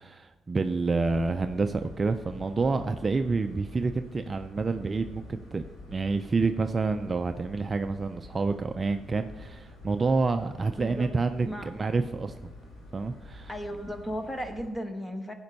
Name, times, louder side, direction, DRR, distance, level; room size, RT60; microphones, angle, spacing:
voice 1, 0.0-12.3 12.9-13.5, right 4 dB, 25° right, 8 dB, 0.4 m, -28 dB
sound 1, 1.0-14.7, left 2 dB, 60° left, 3.8 m, -47 dB
voice 2, 10.8-11.1 11.4-11.7 13.5-15.3, equal, 10° left, 7 dB, 1.1 m, -35 dB
15.0 x 5.2 x 5.3 m, 1.2 s
cardioid pair, 130°, 0 cm